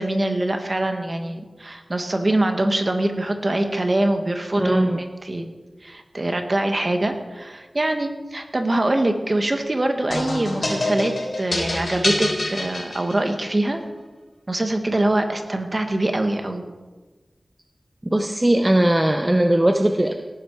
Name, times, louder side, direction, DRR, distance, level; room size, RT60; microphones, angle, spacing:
voice 1, 0.0-5.4 5.8-13.8 14.5-16.6, right 1 dB, 40° right, 5 dB, 1.7 m, -23 dB
voice 2, 4.6-5.0 18.1-20.1, right 1 dB, 20° right, 5 dB, 0.8 m, -19 dB
sound 1, 10.1-13.5, left 2 dB, 65° left, 4.2 m, -26 dB
18.0 x 10.5 x 4.8 m, 1.3 s
wide cardioid pair, 70°, 0 cm